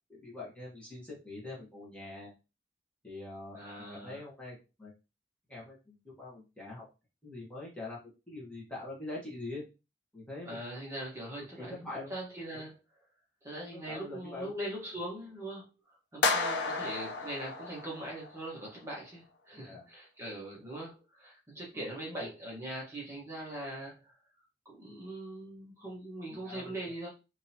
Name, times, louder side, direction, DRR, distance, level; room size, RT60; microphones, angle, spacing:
voice 1, 0.1-2.3 3.0-4.9 5.5-6.9 7.2-8.0 8.3-9.6 10.1-10.6 11.6-12.1 12.5-12.6 13.7-14.5 16.8-16.9 19.5-19.8 21.7-21.9 22.2-22.3 26.3-27.0, left 2 dB, 5° left, -6 dB, 1.2 m, -44 dB
voice 2, 3.5-4.2 10.4-11.8 12.1-12.8 13.4-15.7 16.1-24.2 24.6-27.1, right 1 dB, 15° right, -4 dB, 1.2 m, -41 dB
sound 1, 16.2-18.5, left 4 dB, 75° left, 0.6 m, -32 dB
3.7 x 2.9 x 2.8 m, 0.28 s
head